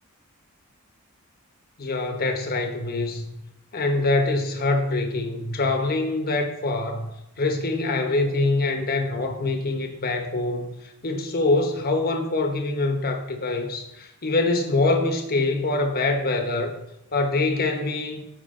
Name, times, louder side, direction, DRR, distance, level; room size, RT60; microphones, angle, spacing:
voice 1, 1.8-3.4 3.7-7.1 7.4-16.7 17.1-18.3, left 2 dB, 45° left, 5 dB, 1.1 m, -24 dB
13.0 x 5.1 x 3.8 m, 0.86 s
head